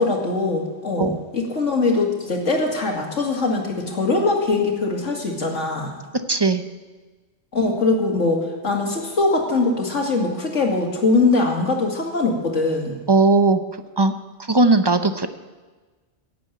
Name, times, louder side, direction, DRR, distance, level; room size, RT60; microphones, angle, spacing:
voice 1, 0.0-5.9 7.5-12.9, left 3 dB, 90° left, 1 dB, 2.6 m, -22 dB
voice 2, 6.1-6.6 13.1-13.6 14.0-14.1 14.4-15.3, right 3 dB, 30° right, 9 dB, 0.6 m, -18 dB
15.0 x 7.8 x 9.3 m, 1.3 s
omnidirectional pair, 1.2 m